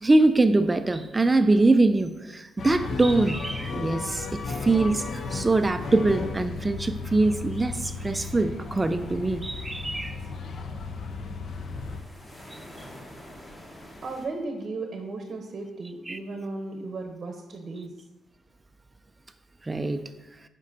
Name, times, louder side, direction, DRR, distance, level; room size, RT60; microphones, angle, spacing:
voice 1, 0.0-10.2 12.5-12.6 16.1-16.2 19.6-20.0, right 2 dB, 20° right, 10 dB, 0.3 m, -23 dB
sound 1, 2.6-12.0, left 4 dB, 55° left, 0.6 m, -34 dB
sound 2, 8.7-14.3, left 1 dB, 20° left, 1.4 m, -48 dB
voice 2, 14.0-17.9, right 3 dB, 45° right, 4 dB, 0.8 m, -35 dB
7.2 x 5.2 x 2.7 m, 1.0 s
cardioid pair, 90°, 0 cm